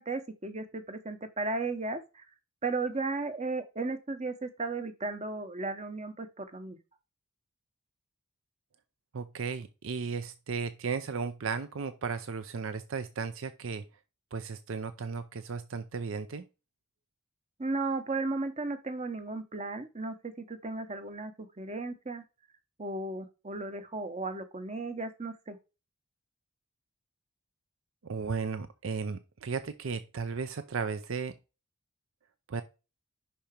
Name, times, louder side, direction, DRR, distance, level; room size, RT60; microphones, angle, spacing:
voice 1, 0.0-2.2 2.6-6.8 17.6-22.2 22.8-25.6, right 3 dB, 30° right, 9 dB, 0.9 m, -35 dB
voice 2, 9.1-13.9 14.3-16.4 28.0-31.3 32.5-32.6, right 5 dB, 60° right, 10 dB, 0.5 m, -35 dB
5.8 x 4.2 x 5.1 m, 0.28 s
head